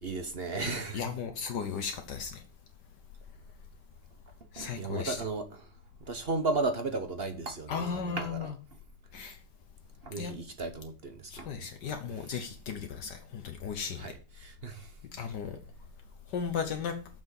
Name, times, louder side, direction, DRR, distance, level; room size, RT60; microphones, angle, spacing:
voice 1, 0.0-1.1 4.6-5.6 6.0-8.5 10.0-11.7 14.0-14.9, right 3 dB, 40° right, 1.1 m, -35 dB
voice 2, 0.6-2.4 4.5-5.2 7.7-8.5 9.1-9.4 10.2-10.3 11.3-14.1 15.1-15.6 16.3-17.0, left 6 dB, 70° left, 1.6 m, -36 dB
7.3 x 6.0 x 7.0 m
omnidirectional pair, 1.9 m